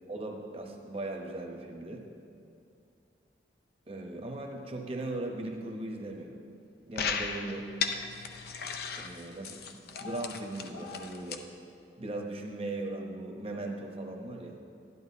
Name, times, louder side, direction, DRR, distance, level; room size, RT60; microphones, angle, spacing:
voice 1, 0.1-2.1 3.9-6.4 6.8-7.7 9.0-11.5 12.0-14.6, right 2 dB, 35° right, 2 dB, 0.9 m, -38 dB
sound 1, 7.0-11.4, left 6 dB, 60° left, 0.6 m, -36 dB
12.0 x 11.0 x 2.7 m, 2.6 s
head